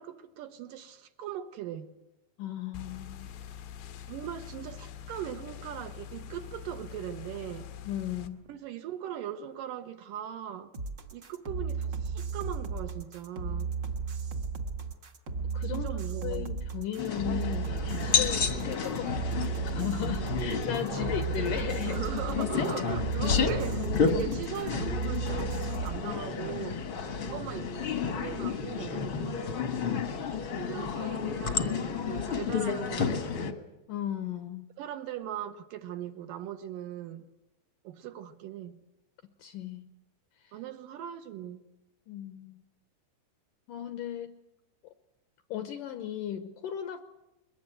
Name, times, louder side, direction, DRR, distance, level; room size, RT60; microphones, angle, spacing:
voice 1, 0.0-1.9 4.1-7.7 8.5-10.7 11.1-13.7 15.7-16.5 20.9-21.1 21.9-26.8 27.2-29.1 30.5-33.6 34.8-37.3 37.8-38.8 40.5-41.6, right 10 dB, 70° right, 2.1 m, -40 dB
voice 2, 2.4-3.3 7.8-8.4 15.5-15.9 16.2-19.4 19.7-22.0 24.1-24.3 33.9-34.7 39.4-39.8 42.1-42.6 43.7-44.4 45.5-47.0, left 10 dB, 75° left, 2.0 m, -36 dB
sound 1, 2.7-8.3, left 9 dB, 90° left, 3.7 m, -44 dB
sound 2, 10.7-26.0, right 5 dB, 50° right, 1.3 m, -34 dB
sound 3, 17.0-33.5, left 5 dB, 55° left, 1.4 m, -31 dB
22.5 x 22.0 x 9.1 m
omnidirectional pair, 5.0 m